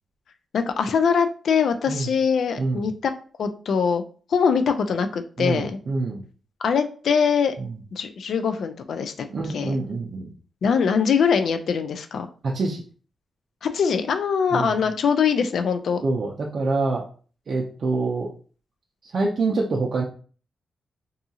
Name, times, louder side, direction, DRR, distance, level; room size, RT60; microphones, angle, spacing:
voice 1, 0.5-3.1 3.4-4.0 4.3-5.8 6.6-7.5 7.9-9.7 10.6-12.3 13.6-16.0, left 6 dB, 75° left, 8 dB, 0.3 m, -22 dB
voice 2, 5.4-6.2 7.6-7.7 9.3-10.3 12.4-12.8 14.5-14.8 16.0-17.0 17.5-18.3 19.1-20.0, right 3 dB, 60° right, -2 dB, 0.5 m, -25 dB
2.7 x 2.3 x 2.7 m, 0.40 s
cardioid pair, 80°, 0 cm